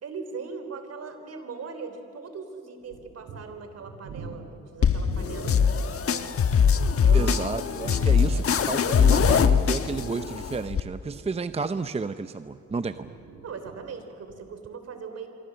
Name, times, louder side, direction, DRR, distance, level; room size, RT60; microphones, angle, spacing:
voice 1, 0.0-6.4 7.0-7.4 7.8-8.4 13.4-15.3, right 5 dB, 55° right, 8 dB, 3.6 m, -40 dB
sound 1, 2.8-5.7 6.9-9.5 9.8-12.0 12.5-13.9 14.3-14.4, right 5 dB, 75° right, 7.9 m, -44 dB
sound 2, 4.8-10.8, left 6 dB, 50° left, 1.2 m, -22 dB
voice 2, 7.1-13.1, right 4 dB, 20° right, 11 dB, 0.6 m, -32 dB
25.5 x 24.0 x 7.7 m, 2.9 s
cardioid pair, 90°, 30 cm